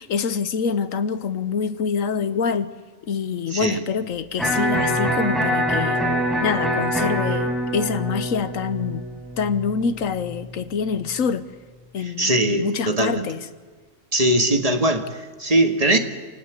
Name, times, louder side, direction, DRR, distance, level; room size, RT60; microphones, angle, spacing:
voice 1, 0.0-2.7 3.1-6.0 6.4-9.0 9.4-11.5 11.9-13.4, left 6 dB, 80° left, 1.4 m, -25 dB
voice 2, 3.5-3.8 12.0-13.3 14.1-16.0, right 1 dB, 30° right, 1.8 m, -21 dB
Electric guitar, 4.4-10.4, equal, ahead, 6.1 m, -24 dB
27.0 x 19.0 x 8.2 m
omnidirectional pair, 1.4 m